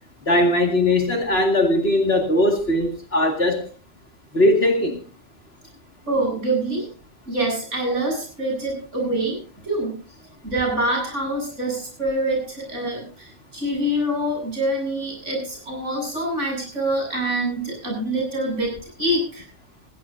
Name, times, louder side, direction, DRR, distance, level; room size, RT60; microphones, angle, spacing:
voice 1, 0.3-3.7 4.3-5.0, left 1 dB, 45° left, 3 dB, 2.5 m, -19 dB
voice 2, 6.1-6.9 7.3-10.0 10.4-18.7 19.0-19.4, right 1 dB, 60° right, 1 dB, 8.5 m, -25 dB
19.0 x 16.0 x 2.7 m, 0.37 s
omnidirectional pair, 1.4 m